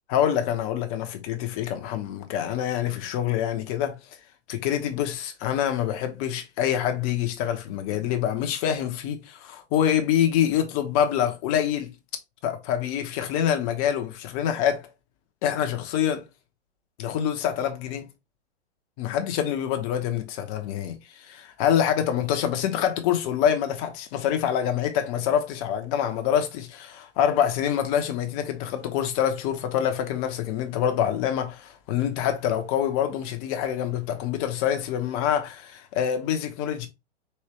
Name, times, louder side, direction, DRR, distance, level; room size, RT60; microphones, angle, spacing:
voice 1, 0.1-4.0 4.5-11.9 12.4-14.9 15.4-16.2 17.0-18.1 19.0-36.9, left 9 dB, 30° left, 0.9 m, -26 dB
4.4 x 3.2 x 3.2 m
figure-of-eight pair, 115°, 35 cm